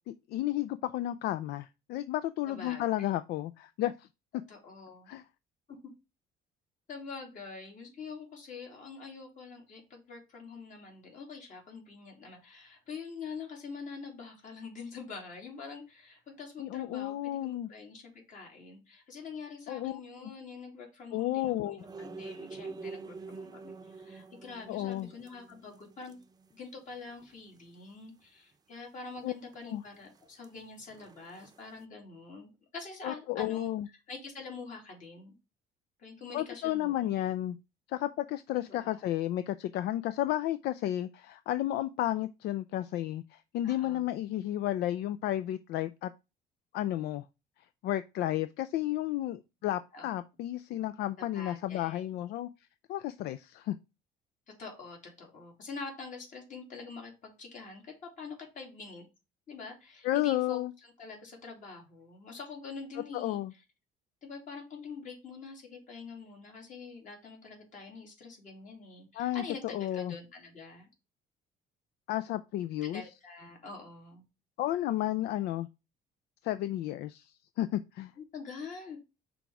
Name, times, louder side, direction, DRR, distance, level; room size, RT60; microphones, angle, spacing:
voice 1, 0.3-4.1 5.1-5.2 16.6-17.7 19.7-20.3 21.1-21.8 24.7-25.1 29.2-29.3 29.7-29.8 33.0-33.9 36.3-37.6 37.9-46.1 46.7-47.2 47.8-52.5 52.9-53.8 60.0-60.7 63.1-63.5 69.2-70.1 72.1-73.0 74.6-75.7 76.4-78.1, left 14 dB, 75° left, 0.4 m, -32 dB
voice 2, 2.5-3.1 4.5-5.1 5.7-5.8 6.9-26.2 26.5-33.7 34.1-35.3 36.0-37.2 38.5-39.0 43.6-44.1 49.9-50.1 51.2-52.0 54.6-59.1 59.5-63.6 64.2-70.9 72.8-74.2 78.2-79.0, left 4 dB, 50° left, 3.0 m, -45 dB
sound 1, 21.8-26.6 26.9-27.0 27.2-27.3 29.2-29.6 29.9-31.8, right 4 dB, 25° right, 0.6 m, -47 dB
5.9 x 3.5 x 4.7 m
cardioid pair, 110°, 17 cm